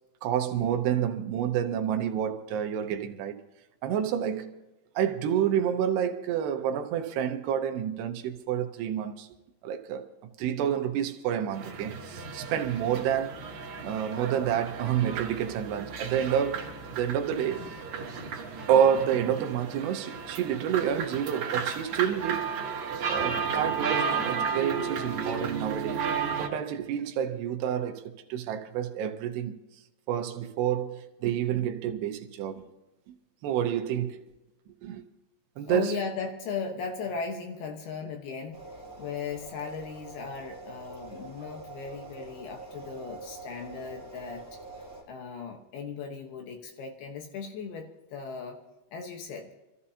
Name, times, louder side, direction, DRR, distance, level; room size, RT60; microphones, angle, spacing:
voice 1, 0.2-3.4 3.8-4.5 5.0-9.3 9.6-10.1 10.4-13.4 13.8-17.6 18.7-22.7 23.1-26.1 26.4-29.6 30.1-32.7 33.4-34.2 34.8-35.0 35.6-36.0, right 9 dB, 75° right, 2.8 m, -29 dB
sound 1, 11.5-26.5, right 6 dB, 55° right, 2.3 m, -33 dB
voice 2, 35.7-44.5 45.1-48.6 48.9-49.5, left 5 dB, 70° left, 2.9 m, -37 dB
sound 2, 38.5-45.0, right 3 dB, 5° left, 5.3 m, -45 dB
26.5 x 14.0 x 2.8 m
omnidirectional pair, 5.3 m